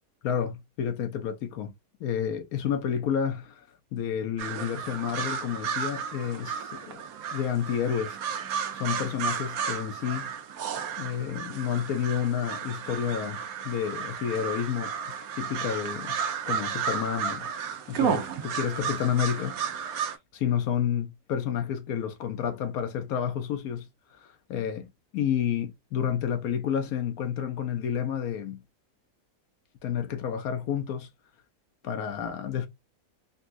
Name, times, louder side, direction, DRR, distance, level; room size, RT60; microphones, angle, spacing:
voice 1, 0.2-1.7 2.0-3.7 3.9-7.0 7.3-8.2 8.7-10.3 11.0-14.9 15.4-16.2 16.5-17.5 17.9-19.8 20.3-23.9 24.2-28.6 29.8-31.1 31.8-32.7, left 8 dB, 75° left, 1.1 m, -30 dB
sound 1, 4.4-20.2, right 7 dB, 75° right, 1.1 m, -33 dB
4.0 x 2.3 x 2.5 m
omnidirectional pair, 1.6 m